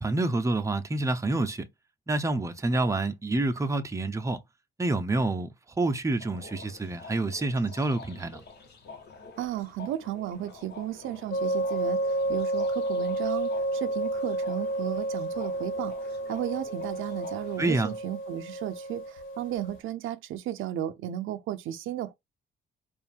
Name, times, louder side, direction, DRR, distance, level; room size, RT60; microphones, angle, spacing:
voice 1, 0.0-1.6 2.1-4.4 4.8-5.5 5.8-8.4 17.6-17.9, right 2 dB, 15° right, 0.7 m, -27 dB
sound 1, 6.2-17.9, left 4 dB, 55° left, 1.4 m, -48 dB
voice 2, 9.4-22.1, right 12 dB, 85° right, 0.6 m, -34 dB
sound 2, 11.3-19.8, right 1 dB, 80° left, 1.4 m, -31 dB
4.6 x 2.6 x 3.5 m
cardioid pair, 90°, 20 cm